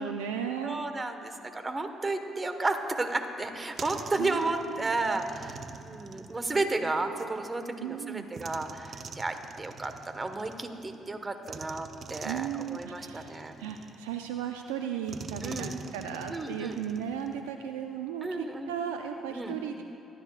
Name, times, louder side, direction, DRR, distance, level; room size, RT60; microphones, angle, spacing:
voice 1, 0.0-0.8 4.2-4.9 7.8-8.3 12.2-19.8, right 8 dB, 85° right, 5 dB, 0.5 m, -36 dB
voice 2, 0.6-13.5 15.4-15.7 16.3-16.8 18.2-18.7 19.3-19.5, right 2 dB, 25° right, 7 dB, 1.4 m, -33 dB
sound 1, 3.4-7.3 8.3-11.0 11.4-14.4 15.1-17.5, right 5 dB, 50° right, 0.7 m, -45 dB
24.5 x 13.0 x 2.5 m, 2.9 s
hypercardioid pair, 50°, 0 cm